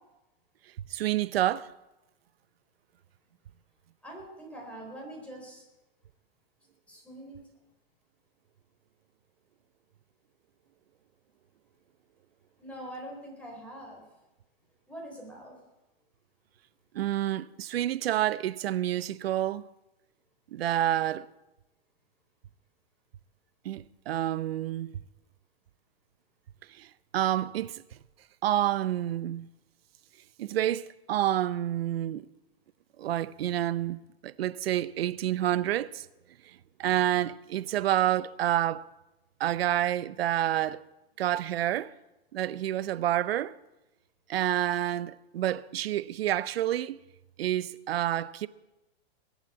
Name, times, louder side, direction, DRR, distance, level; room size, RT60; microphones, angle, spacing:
voice 1, 0.9-1.7 16.9-19.6 20.5-21.3 23.6-24.9 26.8-26.9 27.1-27.8 28.4-29.5 30.4-32.3 33.0-34.0 34.2-36.1 36.8-38.8 39.4-40.8 41.2-41.9 42.3-43.6 44.3-47.0 47.4-48.5, right 12 dB, 75° right, 0.7 m, -28 dB
voice 2, 4.0-5.6 6.9-7.4 12.6-14.0 14.9-15.6, right 1 dB, 5° left, 3.8 m, -43 dB
21.0 x 7.3 x 8.5 m
hypercardioid pair, 155°, 31 cm